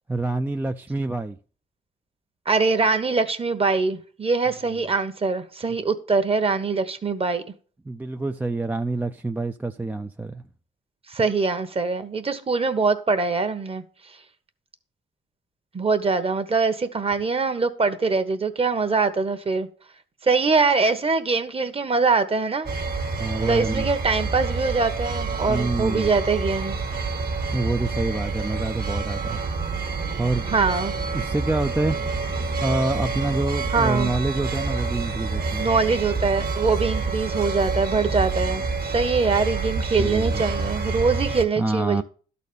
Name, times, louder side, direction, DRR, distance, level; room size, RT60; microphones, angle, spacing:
voice 1, 0.1-1.4 7.9-10.4 23.2-23.9 25.5-26.1 27.5-29.4 30.2-30.5 31.1-32.0 32.6-35.7 40.0-40.4 41.6-42.0, right 2 dB, 10° right, 0.4 m, -26 dB
voice 2, 2.5-7.4 11.1-13.8 15.7-19.7 20.2-22.7 23.4-26.7 30.5-30.9 33.7-34.1 35.6-42.0, right 4 dB, 30° right, 1.1 m, -23 dB
sound 1, 22.7-41.4, right 4 dB, 50° right, 1.6 m, -27 dB
12.0 x 4.2 x 6.8 m
cardioid pair, 90°, 20 cm